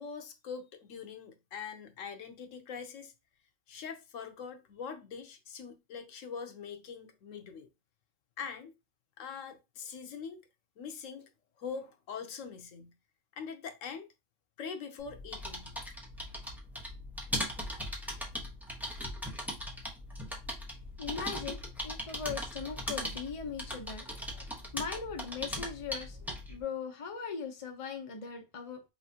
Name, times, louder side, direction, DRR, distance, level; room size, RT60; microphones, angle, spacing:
voice 1, 0.0-3.1 3.7-7.7 8.4-8.7 9.2-10.4 10.8-11.3 11.6-12.9 13.3-14.1 14.6-15.7, left 6 dB, 85° left, 1.1 m, -43 dB
sound 1, 15.0-26.6, equal, ahead, 0.9 m, -39 dB
voice 2, 21.0-28.8, left 6 dB, 35° left, 0.7 m, -40 dB
5.6 x 2.4 x 2.8 m
omnidirectional pair, 1.3 m